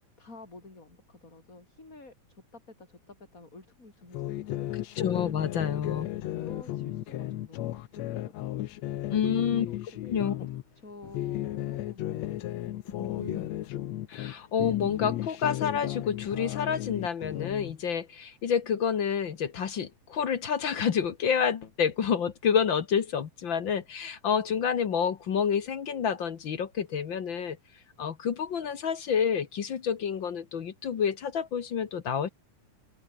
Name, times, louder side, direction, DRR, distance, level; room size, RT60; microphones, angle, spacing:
voice 1, 0.2-5.0 6.3-8.7 9.2-13.7, left 2 dB, 25° left, 5.8 m, -51 dB
sound 1, 4.1-10.6 11.0-14.3 14.6-17.7, left 14 dB, 70° left, 2.0 m, -34 dB
voice 2, 4.7-6.1 9.1-9.7 10.0-10.3 13.0-13.5 14.1-27.6 28.0-32.3, left 7 dB, 50° left, 1.7 m, -29 dB
open air
omnidirectional pair, 3.4 m